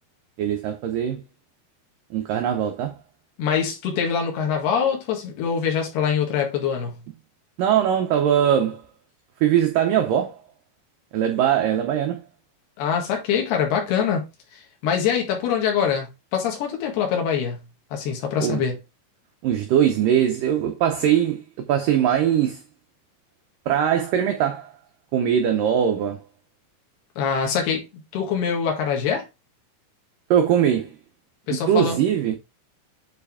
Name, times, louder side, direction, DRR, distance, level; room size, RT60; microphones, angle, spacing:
voice 1, 0.4-1.2 2.1-3.0 7.6-8.8 9.4-10.4 11.1-12.2 18.4-18.6 19.4-22.6 23.7-24.7 25.1-26.2 30.3-30.9 31.5-32.4, right 9 dB, 85° right, 1.9 m, -21 dB
voice 2, 3.4-7.0 12.8-14.2 14.5-17.6 17.9-18.7 27.2-27.8 28.1-29.3 31.5-32.0, left 7 dB, 70° left, 3.7 m, -24 dB
9.3 x 4.2 x 3.5 m
omnidirectional pair, 4.9 m